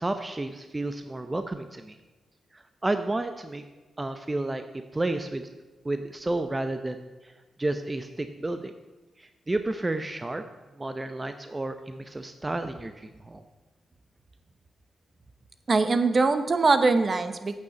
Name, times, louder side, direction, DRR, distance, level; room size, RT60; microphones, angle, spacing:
voice 1, 0.0-2.0 2.5-3.6 4.0-4.6 4.9-5.5 5.8-7.3 7.6-8.7 9.2-10.4 10.8-13.4, right 2 dB, 25° right, 8 dB, 0.7 m, -31 dB
voice 2, 15.7-17.6, right 3 dB, 45° right, 10 dB, 1.0 m, -22 dB
8.8 x 6.6 x 7.8 m, 1.2 s
cardioid pair, 65°, 0 cm